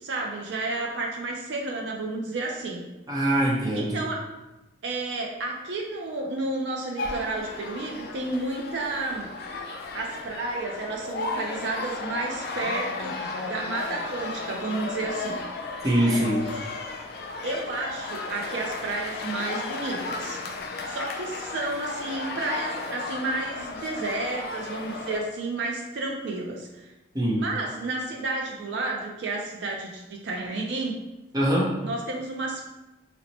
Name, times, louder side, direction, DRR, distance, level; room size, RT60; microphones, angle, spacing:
voice 1, 0.0-2.8 3.7-4.2 4.8-9.3 9.9-15.4 16.0-16.7 17.4-20.4 20.8-26.9 27.4-30.9 31.8-32.7, right 2 dB, 65° right, 0 dB, 0.4 m, -31 dB
voice 2, 3.1-4.0 15.8-16.4 27.1-27.4 31.3-31.7, right 1 dB, 20° right, -4 dB, 0.6 m, -23 dB
sound 1, 7.0-25.2, left 3 dB, 55° left, 0.3 m, -34 dB
2.8 x 2.0 x 4.0 m, 1.0 s
head